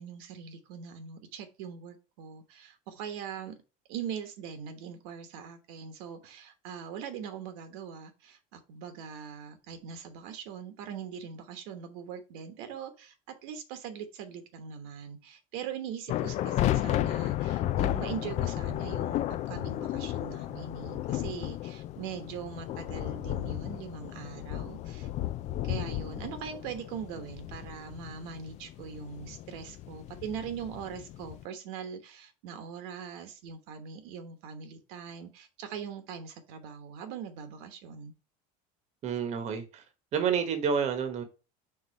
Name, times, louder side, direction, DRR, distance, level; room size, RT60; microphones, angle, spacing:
voice 1, 0.0-3.5 3.9-25.1 25.6-38.1, right 7 dB, 70° right, 1.2 m, -41 dB
sound 1, 16.1-31.4, left 14 dB, 40° left, 0.4 m, -33 dB
voice 2, 39.0-39.8 40.1-41.2, right 7 dB, 35° right, 1.1 m, -29 dB
4.8 x 4.0 x 5.3 m
cardioid pair, 140°, 18 cm